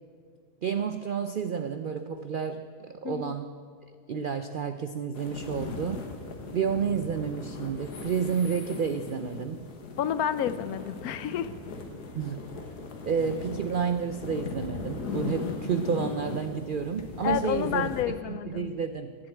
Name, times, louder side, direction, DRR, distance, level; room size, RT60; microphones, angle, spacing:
voice 1, 0.6-3.5 3.9-6.0 6.5-9.7 12.1-12.4 13.0-19.2, right 6 dB, 90° right, 9 dB, 0.4 m, -30 dB
voice 2, 3.0-3.3 10.0-11.5 17.2-18.7, left 10 dB, 75° left, 13 dB, 1.1 m, -30 dB
sound 1, 5.2-18.0, left 4 dB, 90° left, 1.9 m, -38 dB
11.5 x 10.5 x 8.5 m, 2.1 s
omnidirectional pair, 1.6 m